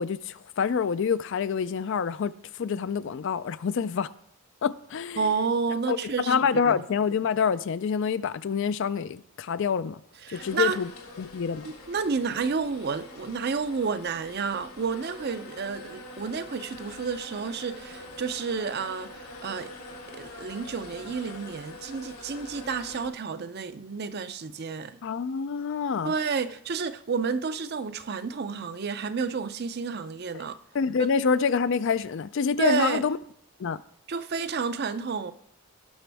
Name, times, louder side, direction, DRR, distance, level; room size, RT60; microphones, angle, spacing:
voice 1, 0.0-4.1 4.6-5.3 5.9-10.0 10.3-10.9 11.2-11.7 25.0-26.1 30.3-30.4 30.7-33.2 33.6-33.8, left 6 dB, 55° left, 0.3 m, -27 dB
voice 2, 5.2-6.3 6.7-6.8 10.2-10.8 11.6-19.7 20.1-25.0 26.0-30.6 31.0-31.2 32.6-33.0 34.1-35.3, right 5 dB, 45° right, 0.5 m, -30 dB
sound 1, 10.3-23.1, left 2 dB, 80° left, 2.3 m, -44 dB
17.5 x 6.1 x 3.4 m
head